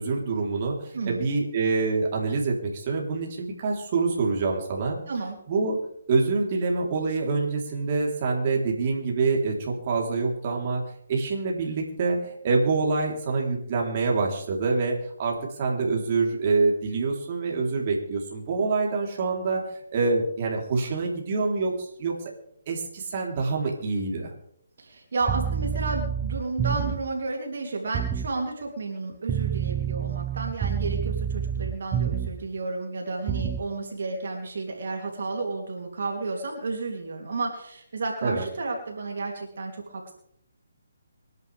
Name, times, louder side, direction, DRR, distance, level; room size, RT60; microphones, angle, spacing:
voice 1, 0.0-5.0 5.5-5.8 6.1-10.8 11.1-19.6 19.9-22.1 22.7-24.3 38.2-38.5, right 4 dB, 40° right, -1 dB, 3.9 m, -26 dB
voice 2, 0.9-1.2 5.1-5.4 24.8-40.1, right 3 dB, 65° right, 1 dB, 3.2 m, -32 dB
sound 1, 25.2-27.1 27.9-28.3 29.3-32.5 33.3-33.7, right 8 dB, 15° right, 0.6 m, -28 dB
25.0 x 11.0 x 3.6 m, 0.70 s
figure-of-eight pair, 150°, 0 cm